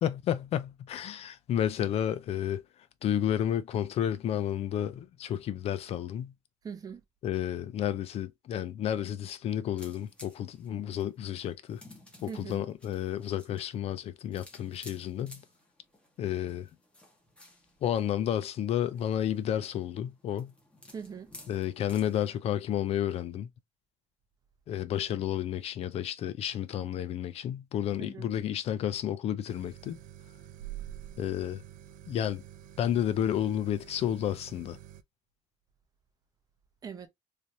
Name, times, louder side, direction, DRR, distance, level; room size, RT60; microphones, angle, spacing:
voice 1, 0.0-2.6 3.0-6.3 7.2-11.8 12.5-15.4 16.2-16.7 17.8-20.5 21.5-23.5 24.7-30.0 31.2-31.6 32.1-32.4 32.8-34.8, left 10 dB, 50° left, 0.4 m, -31 dB
voice 2, 6.6-7.0 12.2-12.7 20.9-21.3 28.0-28.3 36.8-37.1, right 6 dB, 30° right, 0.7 m, -41 dB
sound 1, 9.8-22.3, left 1 dB, 10° left, 1.0 m, -55 dB
sound 2, 29.5-35.0, right 12 dB, 80° right, 0.4 m, -47 dB
3.2 x 2.6 x 2.7 m
cardioid pair, 155°, 13 cm